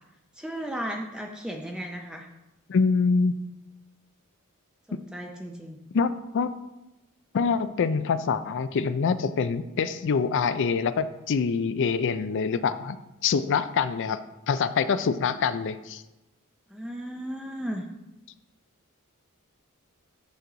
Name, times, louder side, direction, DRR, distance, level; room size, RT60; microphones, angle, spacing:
voice 1, 0.4-2.3 4.9-5.8 16.7-17.9, equal, 5° right, 1 dB, 0.6 m, -35 dB
voice 2, 2.7-3.3 4.9-5.0 5.9-6.5 7.3-13.0 13.2-14.2 14.5-16.0, left 5 dB, 55° left, 12 dB, 0.4 m, -25 dB
9.4 x 6.2 x 3.9 m, 0.98 s
head